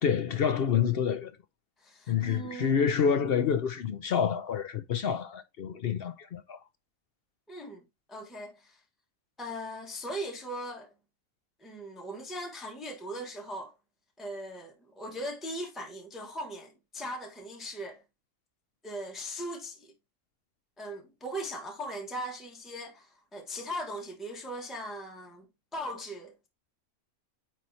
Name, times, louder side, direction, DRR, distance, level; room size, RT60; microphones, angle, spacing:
voice 1, 0.0-1.4 2.1-6.6, left 7 dB, 60° left, 0.6 m, -28 dB
voice 2, 1.8-2.7 7.5-7.8 8.1-8.8 9.4-10.9 11.6-13.7 14.2-18.0 18.8-19.9 20.8-25.5 25.7-26.5, equal, ahead, 1.2 m, -39 dB
9.0 x 3.2 x 4.1 m
omnidirectional pair, 1.5 m